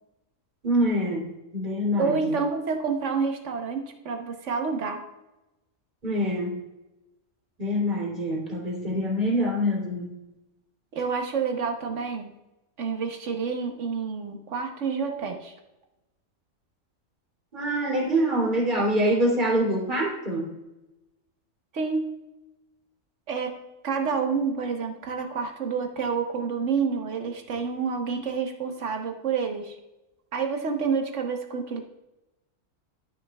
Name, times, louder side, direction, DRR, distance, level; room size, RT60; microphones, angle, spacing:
voice 1, 0.6-2.4 6.0-6.6 7.6-10.2 17.5-20.5, equal, 35° right, -2 dB, 2.9 m, -25 dB
voice 2, 2.0-5.0 10.9-12.3 12.8-15.5 21.7-22.2 23.3-23.5 23.8-29.8 30.3-31.8, right 5 dB, 65° right, 5 dB, 1.3 m, -28 dB
12.0 x 6.8 x 2.3 m, 0.98 s
omnidirectional pair, 1.3 m